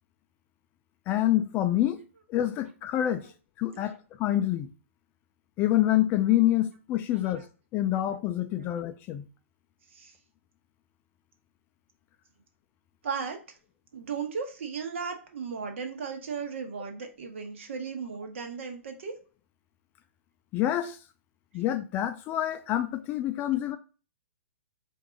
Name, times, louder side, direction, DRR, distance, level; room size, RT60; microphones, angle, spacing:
voice 1, 1.1-2.0 2.3-3.3 3.6-4.7 5.6-7.5 7.7-9.2 20.5-21.0 21.5-23.8, left 13 dB, 25° left, 0.4 m, -26 dB
voice 2, 13.0-13.4 13.9-19.2, right 5 dB, 60° right, 1.1 m, -36 dB
4.6 x 2.6 x 3.7 m
figure-of-eight pair, 115°, 8 cm